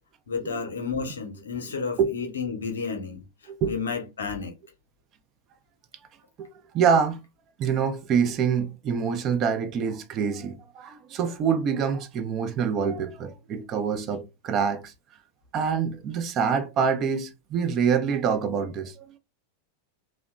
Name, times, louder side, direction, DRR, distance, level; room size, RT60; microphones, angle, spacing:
voice 1, 0.3-3.2 3.7-4.5, left 5 dB, 70° left, 0.6 m, -31 dB
voice 2, 6.7-7.2 7.6-14.9 15.5-19.1, right 6 dB, 35° right, 0.4 m, -25 dB
2.7 x 2.1 x 2.2 m
figure-of-eight pair, 90°, 0 cm